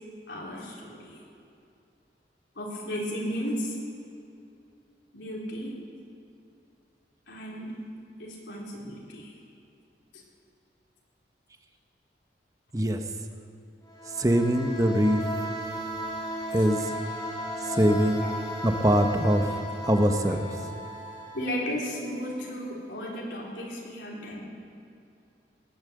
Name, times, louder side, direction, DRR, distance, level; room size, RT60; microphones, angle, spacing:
voice 1, 0.3-1.2 2.6-3.8 5.1-5.8 7.3-7.7 8.2-9.3 10.1-10.2 16.5-16.6 18.2-18.3 20.3-20.4 21.3-24.4, equal, 85° left, -4 dB, 3.5 m, -34 dB
sound 1, 13.9-22.5, equal, 20° left, 2.8 m, -36 dB
voice 2, 14.2-15.2 16.5-16.8 17.8-18.2 18.6-19.4 19.9-20.4, equal, 20° right, 6 dB, 1.0 m, -22 dB
19.0 x 9.0 x 7.8 m, 2.6 s
head